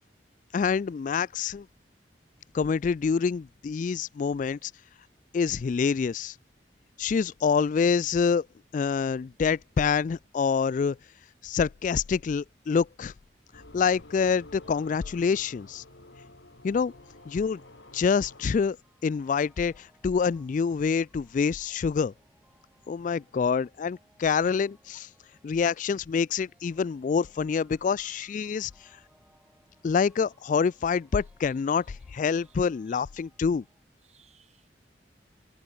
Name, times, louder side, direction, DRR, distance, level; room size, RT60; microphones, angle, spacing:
voice 1, 0.5-1.7 2.5-4.7 5.3-6.3 7.0-8.5 8.7-11.0 11.4-13.1 13.7-15.8 16.6-16.9 17.3-17.6 17.9-18.8 19.0-22.1 22.9-25.1 25.4-28.7 29.8-33.6, left 6 dB, 45° left, 0.3 m, -26 dB
sound 1, 13.5-18.5, left 2 dB, 85° left, 3.7 m, -51 dB
sound 2, 14.6-33.8, right 1 dB, 5° right, 6.9 m, -66 dB
voice 2, 29.4-29.9 31.2-31.8 32.4-32.6 32.9-33.0 34.0-34.7, right 6 dB, 40° right, 3.2 m, -66 dB
head